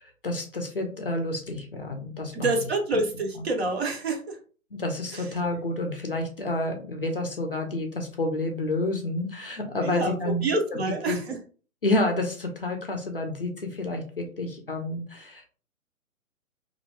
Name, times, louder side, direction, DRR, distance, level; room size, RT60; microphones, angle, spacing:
voice 1, 0.0-2.5 3.4-3.5 4.7-10.8 11.1-11.2 11.8-15.5, left 2 dB, 40° left, 4 dB, 0.4 m, -29 dB
voice 2, 2.3-4.4 5.1-5.2 9.8-10.1 10.4-11.4, right 2 dB, 45° right, 3 dB, 0.6 m, -27 dB
2.4 x 2.1 x 2.7 m, 0.39 s
figure-of-eight pair, 130°, 44 cm